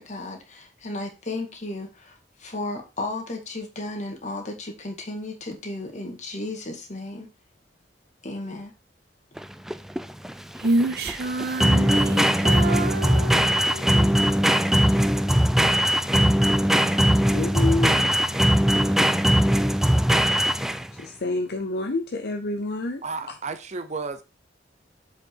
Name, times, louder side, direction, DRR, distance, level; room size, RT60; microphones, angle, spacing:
voice 1, 0.0-7.3 8.2-8.7, left 2 dB, 40° left, 2.0 m, -34 dB
sound 1, 9.4-21.0, equal, ahead, 0.4 m, -20 dB
Female singing, 10.6-14.1, right 2 dB, 60° right, 1.1 m, -27 dB
voice 2, 17.3-18.1 20.9-23.0, left 2 dB, 60° left, 0.7 m, -28 dB
voice 3, 23.0-24.2, right 4 dB, 40° right, 0.7 m, -32 dB
7.7 x 5.1 x 4.6 m
head